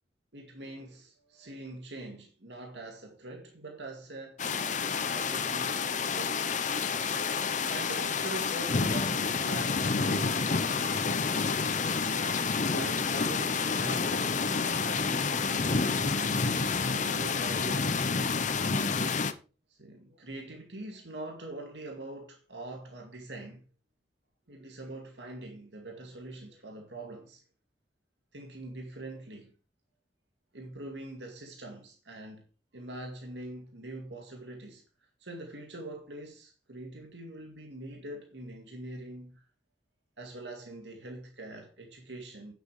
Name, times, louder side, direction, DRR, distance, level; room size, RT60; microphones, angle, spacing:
voice 1, 0.3-4.4 5.1-6.4 7.7-11.0 12.1-18.1 19.7-23.6 24.5-27.4 28.3-29.5 30.5-32.4 32.7-34.8 35.2-39.4 40.2-42.5, right 2 dB, 85° right, 2.2 m, -43 dB
sound 1, 4.4-19.3, left 5 dB, 45° left, 0.9 m, -29 dB
9.6 x 7.8 x 5.0 m
head